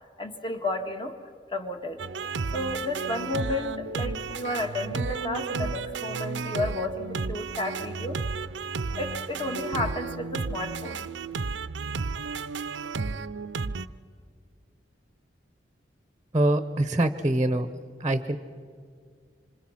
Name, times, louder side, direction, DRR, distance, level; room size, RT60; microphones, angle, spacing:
voice 1, 0.2-1.1 1.5-2.0 2.5-8.2 9.0-11.1, left 2 dB, 30° left, 5 dB, 1.8 m, -32 dB
sound 1, 2.0-13.9, right 4 dB, 80° right, 0.7 m, -32 dB
voice 2, 16.3-17.7 18.0-18.4, right 1 dB, 20° right, 11 dB, 0.9 m, -24 dB
27.5 x 26.0 x 5.9 m, 2.1 s
head